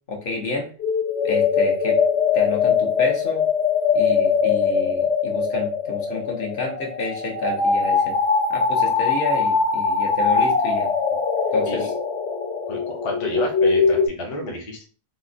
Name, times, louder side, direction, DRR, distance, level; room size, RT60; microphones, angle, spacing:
voice 1, 0.1-0.7 1.2-2.0 2.3-3.5 3.9-8.2 8.5-10.9 11.5-11.9, left 3 dB, 60° left, 0 dB, 1.0 m, -29 dB
sound 1, 0.8-14.1, left 5 dB, 80° left, 1.0 m, -21 dB
voice 2, 12.7-14.8, left 1 dB, 35° left, -1 dB, 0.6 m, -30 dB
4.0 x 2.1 x 2.5 m, 0.39 s
omnidirectional pair, 1.1 m